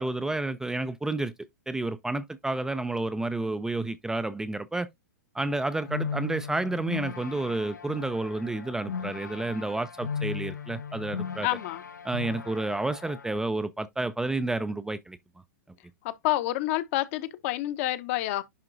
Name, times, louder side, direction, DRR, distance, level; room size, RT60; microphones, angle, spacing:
voice 1, 0.0-1.3 1.7-4.9 5.3-11.5 12.0-15.2, right 2 dB, 5° right, 0.5 m, -30 dB
sound 1, 5.4-13.4, left 6 dB, 85° left, 1.0 m, -37 dB
voice 2, 11.4-11.8 16.0-18.4, left 16 dB, 50° left, 0.9 m, -28 dB
11.0 x 3.7 x 2.5 m
hypercardioid pair, 110°, 9 cm